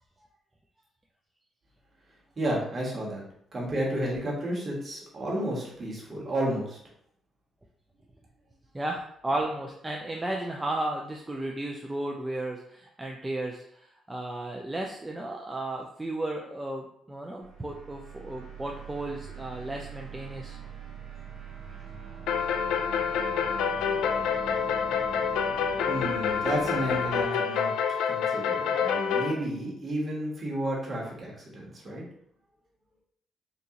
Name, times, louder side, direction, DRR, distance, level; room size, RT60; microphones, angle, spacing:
voice 1, 2.4-3.2 3.5-6.8 25.9-32.0, right 1 dB, 40° right, -3 dB, 1.3 m, -32 dB
voice 2, 8.7-20.6, right 1 dB, 15° right, 0 dB, 0.4 m, -34 dB
sound 1, 17.4-27.2, right 5 dB, 70° right, 0.7 m, -42 dB
sound 2, 22.3-29.3, left 7 dB, 90° left, 0.3 m, -27 dB
3.7 x 2.6 x 2.8 m, 0.71 s
cardioid pair, 90°, 0 cm